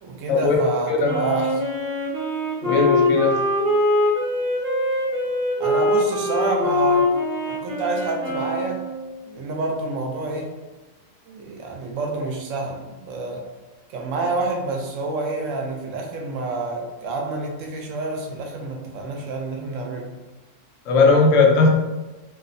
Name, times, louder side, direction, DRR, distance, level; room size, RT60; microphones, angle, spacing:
voice 1, 0.0-1.5 5.6-7.1 7.5-8.8 9.2-10.5 11.3-13.4 13.9-20.1, right 3 dB, 85° right, 1 dB, 0.9 m, -28 dB
voice 2, 0.9-1.3 2.6-3.4 20.9-21.7, left 4 dB, 80° left, 0 dB, 0.9 m, -18 dB
Wind instrument woodwind instrument, 1.0-9.2, left 2 dB, 55° right, 0.8 m, -23 dB
2.8 x 2.0 x 2.5 m, 1.1 s
omnidirectional pair, 1.3 m